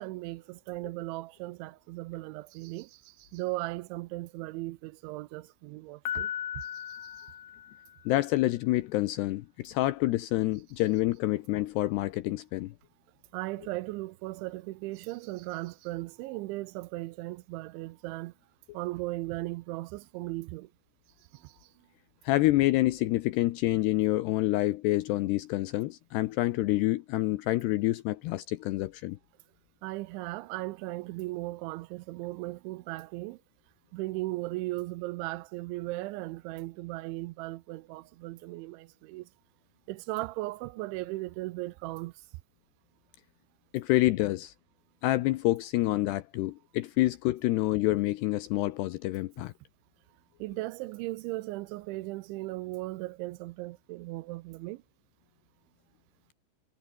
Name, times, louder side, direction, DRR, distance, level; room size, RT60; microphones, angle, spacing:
voice 1, 0.0-6.3 6.6-7.3 13.3-18.3 18.7-20.7 21.3-21.7 29.8-33.4 33.9-39.3 39.9-42.1 50.4-54.8, right 20 dB, 85° right, 3.0 m, -37 dB
Piano, 6.0-8.2, left 10 dB, 55° left, 3.5 m, -37 dB
voice 2, 8.1-12.7 22.2-29.2 43.7-44.5 45.0-49.5, left 17 dB, 80° left, 2.5 m, -27 dB
omnidirectional pair, 5.6 m